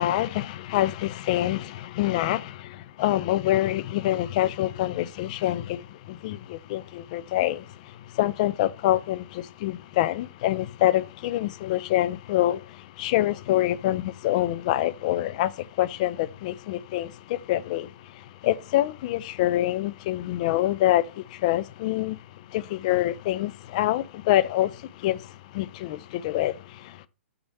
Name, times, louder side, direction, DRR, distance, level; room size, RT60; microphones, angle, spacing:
voice 1, 0.0-22.2 22.5-27.1, left 14 dB, 35° left, 0.4 m, -26 dB
6.2 x 4.0 x 4.6 m
figure-of-eight pair, 115°, 6 cm